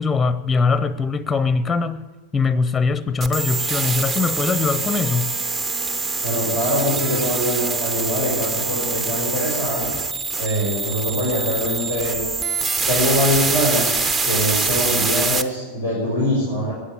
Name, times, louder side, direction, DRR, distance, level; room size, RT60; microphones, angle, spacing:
voice 1, 0.0-2.0 2.3-5.3, left 4 dB, 15° left, 0.7 m, -21 dB
sound 1, 3.2-15.4, right 4 dB, 20° right, 0.8 m, -24 dB
voice 2, 6.2-9.9 10.4-12.2 12.9-13.9 14.3-16.7, equal, 75° right, 5.1 m, -23 dB
15.0 x 9.8 x 8.5 m
figure-of-eight pair, 90°, 0 cm